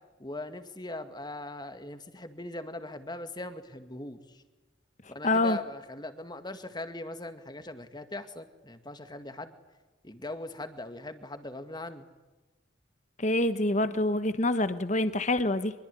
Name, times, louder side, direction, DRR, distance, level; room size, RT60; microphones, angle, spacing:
voice 1, 0.2-4.4 5.1-9.5 10.0-12.1, left 2 dB, 20° left, 10 dB, 2.0 m, -40 dB
voice 2, 5.2-5.6 13.2-15.7, left 2 dB, 35° left, 12 dB, 1.1 m, -26 dB
25.0 x 23.0 x 9.8 m, 1.2 s
head